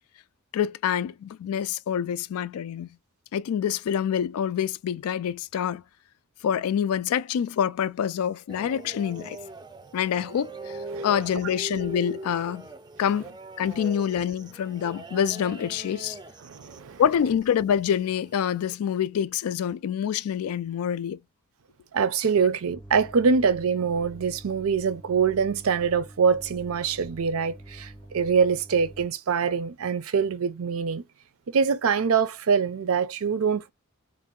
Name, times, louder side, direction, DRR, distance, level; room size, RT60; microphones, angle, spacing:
voice 1, 0.5-2.9 3.3-5.8 6.4-9.4 9.9-10.7 11.0-12.7 13.0-13.3 13.6-16.2 17.0-21.2, left 8 dB, 85° left, 0.3 m, -26 dB
sound 1, 8.5-18.7, right 2 dB, 20° right, 0.4 m, -41 dB
voice 2, 16.4-17.0 21.9-31.0 31.5-33.7, right 6 dB, 75° right, 0.5 m, -24 dB
sound 2, 22.7-29.1, right 1 dB, 20° left, 0.6 m, -46 dB
3.6 x 2.6 x 3.7 m
head